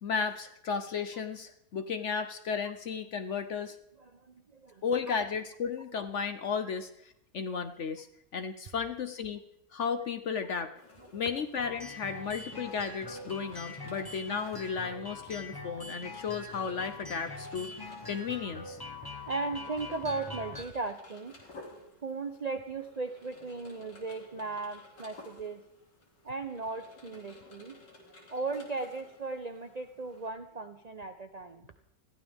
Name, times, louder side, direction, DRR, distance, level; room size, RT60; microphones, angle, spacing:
voice 1, 0.0-3.8 4.8-8.1 8.3-9.4 9.7-10.7 11.1-18.8, left 6 dB, 55° left, 9 dB, 0.9 m, -34 dB
voice 2, 4.0-5.2 11.0-11.2 19.2-21.3 22.0-25.6 26.2-27.8 28.3-31.7, right 3 dB, 60° right, 7 dB, 0.4 m, -37 dB
sound 1, 10.7-30.3, left 2 dB, 80° left, 3.4 m, -55 dB
sound 2, 11.6-20.6, left 2 dB, 15° left, 0.9 m, -43 dB
21.0 x 14.5 x 3.5 m, 0.77 s
omnidirectional pair, 1.9 m